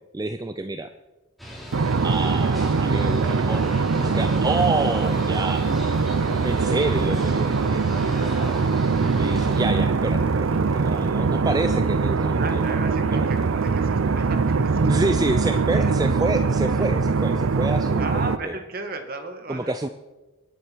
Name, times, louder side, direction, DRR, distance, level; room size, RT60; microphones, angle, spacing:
voice 1, 0.1-0.9 2.0-5.7 6.4-7.9 9.1-12.7 13.1-13.3 14.8-18.6 19.5-19.9, right 2 dB, 20° right, 10 dB, 0.4 m, -28 dB
sound 1, 1.4-9.6, equal, ahead, 3.5 m, -38 dB
sound 2, 1.7-18.4, right 4 dB, 80° right, 0.5 m, -22 dB
sound 3, 4.6-4.7 5.0-5.2 5.5-7.1 9.3-11.1 12.4-12.7 13.3-13.7, left 4 dB, 80° left, 3.1 m, -50 dB
voice 2, 12.4-15.1 15.7-15.9 16.6-16.9 17.9-19.7, right 2 dB, 45° right, 6 dB, 1.7 m, -35 dB
22.0 x 10.5 x 4.6 m, 1.2 s
head